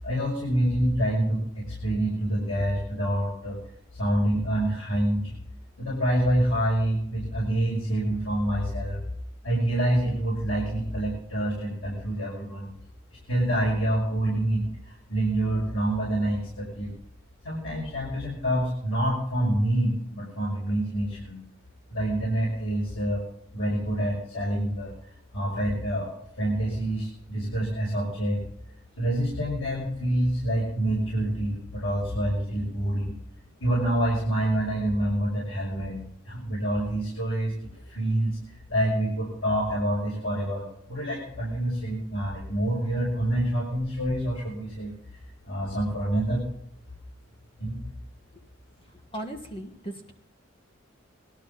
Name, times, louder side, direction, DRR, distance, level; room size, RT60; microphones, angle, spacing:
voice 1, 0.0-3.6 4.0-5.3 5.8-9.0 9.4-12.7 13.3-16.9 17.4-21.4 21.9-23.2 23.5-24.9 25.3-26.1 26.4-28.4 29.0-33.2 33.6-37.6 37.9-38.4 38.7-44.9 45.4-46.4 47.6-47.8, right 1 dB, 85° left, -5 dB, 6.0 m, -27 dB
voice 2, 49.1-50.1, right 1 dB, 25° left, 4 dB, 1.5 m, -37 dB
20.5 x 12.0 x 4.2 m, 0.73 s
head